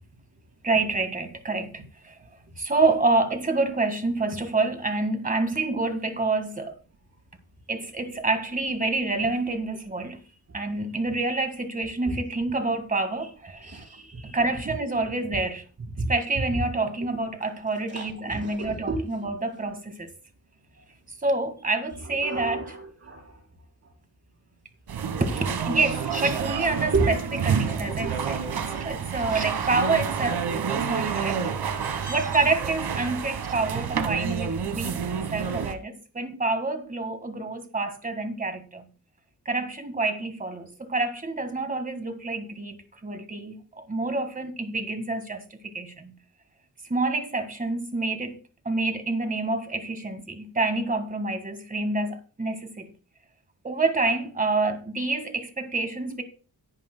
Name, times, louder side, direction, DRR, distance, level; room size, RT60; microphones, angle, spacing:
voice 1, 0.6-1.7 2.0-2.2 2.6-6.8 7.7-10.2 10.5-13.8 14.3-15.6 16.1-20.1 21.2-22.6 25.3-27.2 27.4-38.9 39.4-46.1 46.9-48.4 48.6-52.9 53.6-56.2, right 3 dB, 20° right, 1.7 m, -27 dB
voice 2, 13.6-14.4 14.6-14.7 17.9-19.0 22.0-23.4 23.8-23.9 25.9-26.0 26.9-27.1 27.5-27.6 29.1-29.3 31.7-32.2, right 3 dB, 40° right, 4.7 m, -32 dB
sound 1, 24.9-35.7, right 7 dB, 85° right, 1.5 m, -29 dB
18.0 x 10.5 x 2.2 m
wide cardioid pair, 160°, 38 cm